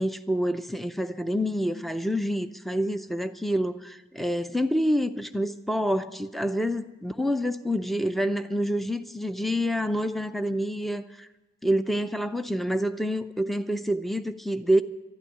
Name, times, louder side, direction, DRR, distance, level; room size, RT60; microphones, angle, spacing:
voice 1, 0.0-11.3 11.6-14.8, equal, ahead, 0.5 m, -27 dB
12.0 x 11.5 x 9.6 m
head